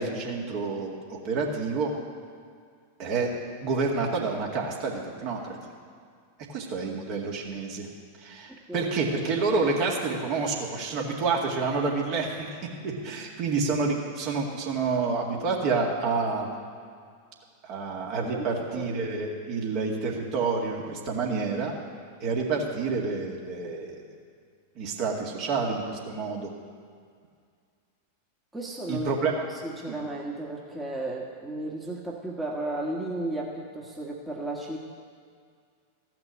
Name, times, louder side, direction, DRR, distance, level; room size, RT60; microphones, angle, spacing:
voice 1, 0.0-1.9 3.0-3.3 3.6-5.6 6.5-7.9 8.2-12.5 12.8-16.5 17.6-21.7 22.2-24.0 24.8-26.5 28.9-29.3 29.9-30.0, right 4 dB, 45° right, -1 dB, 2.1 m, -28 dB
voice 2, 8.5-8.9 18.2-18.9 28.5-29.1 29.4-34.8, right 2 dB, 5° right, -3 dB, 1.5 m, -34 dB
15.0 x 6.0 x 8.4 m, 2.1 s
figure-of-eight pair, 90°, 0 cm